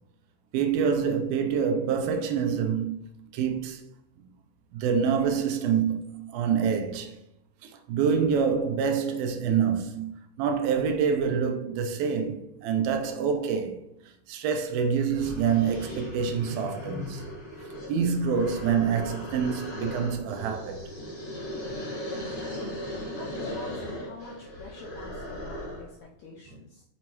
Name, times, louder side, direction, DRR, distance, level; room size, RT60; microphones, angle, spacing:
voice 1, 0.5-3.0 3.3-3.9 4.7-7.2 7.6-10.1 10.4-13.8 14.3-17.2 17.9-20.9, right 6 dB, 80° right, 2.5 m, -26 dB
sound 1, 14.7-14.8 15.1-25.9, left 1 dB, 35° left, 2.4 m, -38 dB
voice 2, 23.2-26.8, left 3 dB, 80° left, 1.7 m, -45 dB
6.5 x 5.8 x 3.0 m
omnidirectional pair, 4.4 m